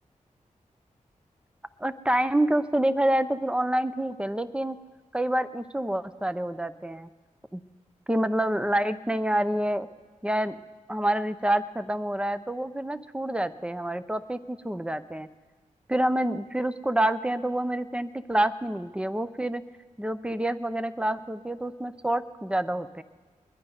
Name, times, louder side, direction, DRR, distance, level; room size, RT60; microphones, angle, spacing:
voice 1, 1.8-4.8 5.1-7.1 7.5-7.6 8.1-9.9 10.2-10.6 10.9-15.3 15.9-19.6 20.0-23.0, right 1 dB, 10° right, 13 dB, 0.7 m, -27 dB
22.0 x 10.0 x 5.4 m, 1.3 s
cardioid pair, 60°, 13 cm